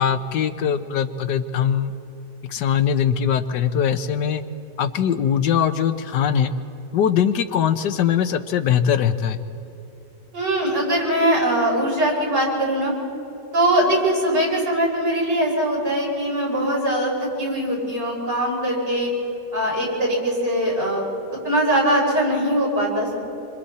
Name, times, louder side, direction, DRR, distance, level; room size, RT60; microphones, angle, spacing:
voice 1, 0.0-1.9 2.5-4.4 4.8-6.5 6.9-9.4, left 8 dB, 85° left, 9 dB, 1.5 m, -21 dB
voice 2, 10.3-12.9 13.5-19.1 19.5-21.1 21.4-23.3, right 1 dB, 80° right, -4 dB, 6.2 m, -21 dB
26.5 x 25.5 x 4.3 m, 3.0 s
omnidirectional pair, 1.8 m